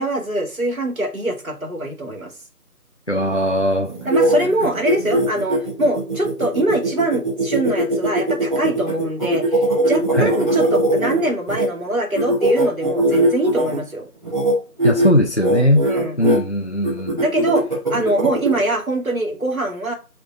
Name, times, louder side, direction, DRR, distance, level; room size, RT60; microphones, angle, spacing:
voice 1, 0.0-2.3 4.0-14.1 15.9-16.2 17.2-17.6 17.9-19.9, right 1 dB, 60° right, 2.1 m, -23 dB
voice 2, 3.1-3.9 10.1-10.4 14.8-15.9 16.2-17.2, left 1 dB, 45° left, 0.5 m, -19 dB
sound 1, 3.8-11.7 12.1-13.8 14.2-14.5 14.8-15.1 15.4-16.4 16.8-18.6, right 1 dB, 30° right, 2.6 m, -20 dB
5.0 x 4.4 x 5.5 m
figure-of-eight pair, 175°, 47 cm